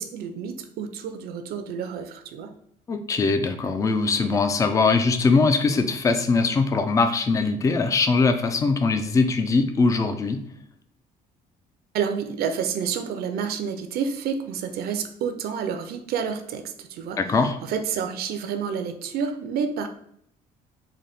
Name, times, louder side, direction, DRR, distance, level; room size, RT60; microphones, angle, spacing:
voice 1, 0.0-2.5 11.9-17.2 17.6-19.9, right 7 dB, 65° right, 7 dB, 0.5 m, -29 dB
voice 2, 2.9-10.4 17.2-17.6, left 4 dB, 20° left, 8 dB, 0.3 m, -21 dB
3.9 x 2.2 x 3.4 m, 0.69 s
cardioid pair, 110°, 17 cm